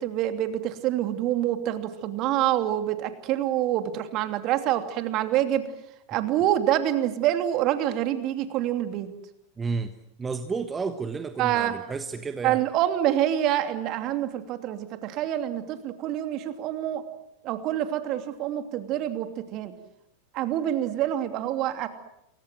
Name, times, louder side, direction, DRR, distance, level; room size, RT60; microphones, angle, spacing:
voice 1, 0.0-5.7 6.1-9.1 11.4-11.7 12.4-17.0 17.4-19.7 20.3-21.9, right 12 dB, 40° right, 8 dB, 2.9 m, -26 dB
voice 2, 9.6-9.9 10.2-12.6, right 4 dB, 15° right, 9 dB, 1.4 m, -31 dB
28.0 x 23.0 x 7.8 m, 0.81 s
figure-of-eight pair, 90°, 0 cm